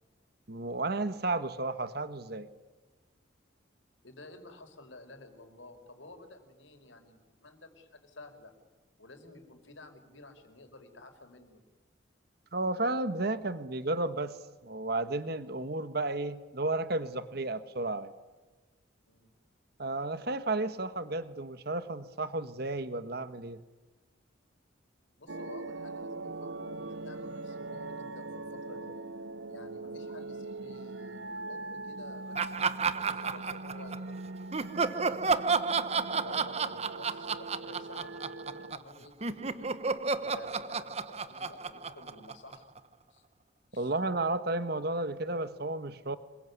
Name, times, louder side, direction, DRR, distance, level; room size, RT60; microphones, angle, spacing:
voice 1, 0.5-2.5 12.5-14.4 14.6-18.1 19.8-23.6 43.7-46.2, right 2 dB, 55° right, 12 dB, 1.4 m, -32 dB
voice 2, 4.0-8.5 9.0-11.6 19.1-19.3 25.2-28.9 29.5-34.2 34.9-39.7 40.2-42.8 43.1-43.2 43.7-43.9, left 2 dB, 80° left, 6 dB, 5.1 m, -51 dB
sound 1, 25.3-38.8, right 2 dB, 75° right, 1.0 m, -42 dB
Laughter, 32.4-34.1 34.5-38.9 39.2-42.8, right 4 dB, 35° right, 1.2 m, -32 dB
27.5 x 22.5 x 9.7 m, 1.2 s
head